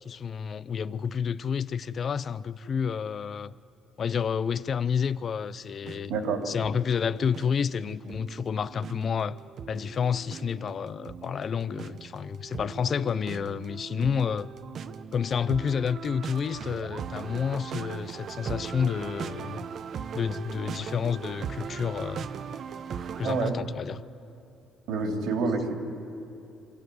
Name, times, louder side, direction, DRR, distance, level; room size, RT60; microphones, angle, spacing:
voice 1, 0.0-3.5 4.0-6.1 6.5-9.4 9.7-14.5 15.1-19.6 20.1-22.3 23.2-24.0, left 7 dB, 40° left, 0.5 m, -29 dB
sound 1, 5.8-23.5, right 7 dB, 50° right, 0.8 m, -39 dB
voice 2, 6.1-6.4 23.2-23.6 24.9-25.8, right 4 dB, 80° right, 3.4 m, -27 dB
25.5 x 14.0 x 9.4 m
cardioid pair, 135°, 0 cm